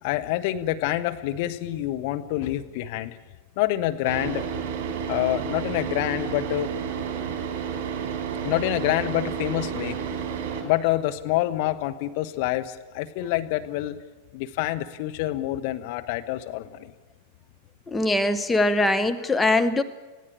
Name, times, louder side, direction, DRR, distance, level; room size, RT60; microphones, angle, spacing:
voice 1, 0.0-3.2 3.6-4.5 5.1-6.7 8.4-10.0 10.6-14.0 14.3-16.9, left 15 dB, 50° left, 8 dB, 1.0 m, -27 dB
Car / Idling, 4.0-10.6, right 7 dB, 45° right, 3.9 m, -31 dB
voice 2, 17.9-19.8, left 2 dB, 10° left, 8 dB, 1.0 m, -22 dB
19.5 x 16.0 x 8.7 m, 1.2 s
figure-of-eight pair, 90°, 0 cm